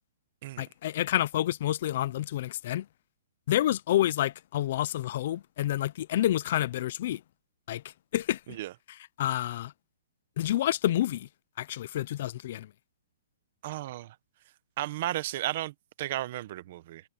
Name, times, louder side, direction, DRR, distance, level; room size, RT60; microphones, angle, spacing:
voice 1, 0.6-2.9 3.5-7.2 7.7-7.8 8.1-8.4 8.9-9.7 10.4-11.3 11.6-12.7, left 13 dB, 40° left, 0.5 m, -28 dB
voice 2, 13.6-14.1 14.8-15.7 16.0-17.0, right 15 dB, 35° right, 0.8 m, -34 dB
hypercardioid pair, 175°, 0 cm